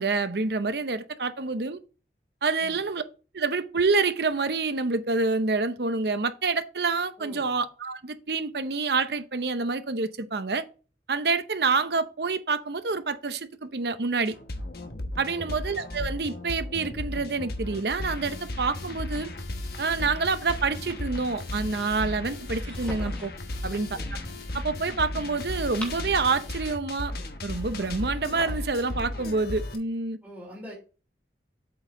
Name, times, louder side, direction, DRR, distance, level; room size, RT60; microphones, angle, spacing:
voice 1, 0.0-1.8 2.4-3.0 3.3-10.6 11.1-14.3 15.2-19.3 19.8-23.3 23.6-24.0 24.5-27.1 27.4-30.2, right 4 dB, 70° right, 0.8 m, -27 dB
voice 2, 7.2-7.6 15.2-15.6 23.9-24.4 30.2-30.7, equal, 10° right, 3.1 m, -44 dB
sound 1, 14.3-29.8, left 1 dB, 60° left, 1.2 m, -35 dB
sound 2, 22.4-23.4 25.4-26.5 27.8-28.7, equal, 10° left, 3.0 m, -41 dB
8.0 x 5.5 x 3.8 m
head